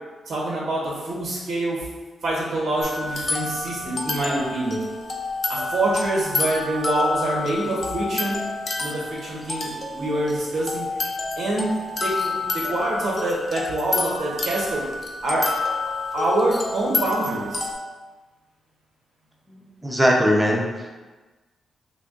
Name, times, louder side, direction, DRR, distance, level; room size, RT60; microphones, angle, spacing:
voice 1, 0.3-1.9 2.2-4.8 5.5-8.4 8.8-11.1 11.4-11.7 12.0-14.8 15.2-15.6 16.1-17.7, right 1 dB, 70° right, -5 dB, 1.2 m, -25 dB
sound 1, 2.8-17.7, left 3 dB, 35° left, 0.5 m, -29 dB
voice 2, 19.5-20.9, equal, 10° right, -1 dB, 0.6 m, -21 dB
3.5 x 2.5 x 3.7 m, 1.3 s
cardioid pair, 125°, 0 cm